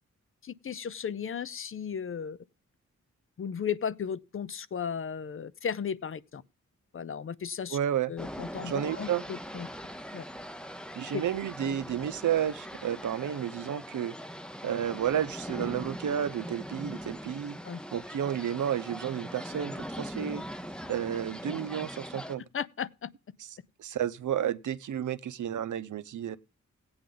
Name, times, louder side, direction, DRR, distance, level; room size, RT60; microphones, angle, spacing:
voice 1, 0.4-2.4 3.4-6.4 6.9-7.8 8.1-9.7 10.1-10.2 11.1-11.2 17.6-17.8 22.5-23.1, left 7 dB, 45° left, 0.5 m, -35 dB
voice 2, 7.7-8.1 8.6-9.2 10.9-14.1 14.6-17.6 17.9-20.5 20.9-22.4 23.8-26.4, right 9 dB, 85° right, 0.7 m, -31 dB
sound 1, 8.2-22.4, equal, 5° left, 0.6 m, -41 dB
16.5 x 8.7 x 3.9 m
wide cardioid pair, 160°, 30 cm